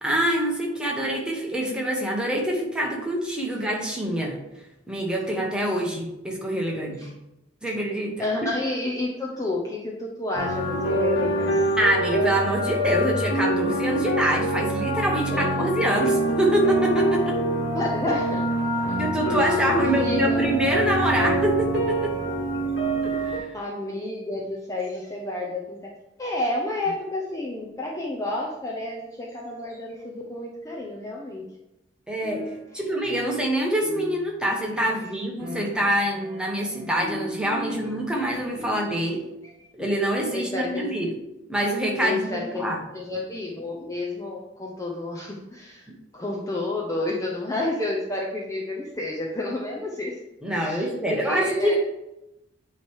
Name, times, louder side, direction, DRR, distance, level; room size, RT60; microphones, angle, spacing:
voice 1, 0.0-4.4 4.9-7.1 7.6-8.2 11.8-17.4 19.0-22.1 23.0-23.5 32.1-32.4 32.7-39.2 39.7-41.1 41.5-42.8 50.4-51.7, right 1 dB, 5° right, -1 dB, 1.1 m, -25 dB
voice 2, 8.2-11.6 15.1-15.7 17.7-18.4 18.7-18.9 19.3-20.5 23.5-25.8 26.2-31.4 37.7-37.8 39.6-39.7 40.3-40.9 42.0-42.6 42.9-50.2 50.5-51.7, left 2 dB, 15° left, -3 dB, 0.7 m, -30 dB
sound 1, 10.3-23.4, right 1 dB, 65° left, 1.5 m, -25 dB
sound 2, 32.2-33.5 33.8-39.1, left 1 dB, 50° right, 1.2 m, -39 dB
8.9 x 3.2 x 4.6 m, 0.91 s
head